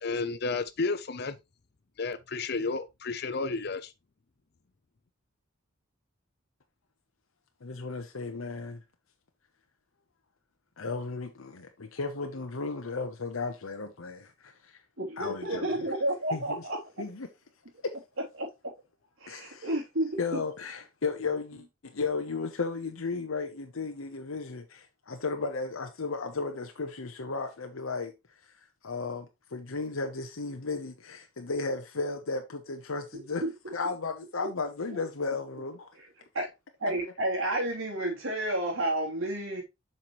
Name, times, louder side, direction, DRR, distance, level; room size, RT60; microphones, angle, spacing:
voice 1, 0.0-1.4 2.0-3.9, left 4 dB, 50° left, 0.6 m, -32 dB
voice 2, 7.6-8.8 10.8-14.8 15.2-15.9 16.3-16.6 17.0-17.3 19.3-19.7 20.2-28.1 28.8-33.4 33.7-35.9 36.9-37.0, left 4 dB, 85° left, 0.9 m, -34 dB
voice 3, 15.0-16.8 18.4-18.5 19.2-20.4 33.1-33.7 36.3-36.5 36.8-39.6, right 1 dB, 85° right, 3.2 m, -31 dB
7.4 x 5.8 x 3.1 m
head